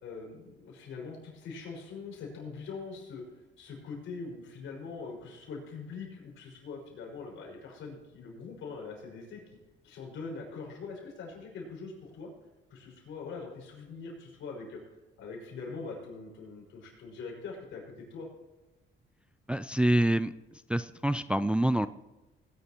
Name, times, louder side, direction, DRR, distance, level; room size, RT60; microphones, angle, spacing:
voice 1, 0.0-3.2 3.6-9.4 9.8-12.3 12.7-14.8 15.2-18.3, left 4 dB, 80° left, -2 dB, 5.5 m, -42 dB
voice 2, 19.5-20.3 20.7-21.9, right 1 dB, 5° right, 13 dB, 0.3 m, -26 dB
19.5 x 11.5 x 3.0 m, 1.1 s
cardioid pair, 90°, 20 cm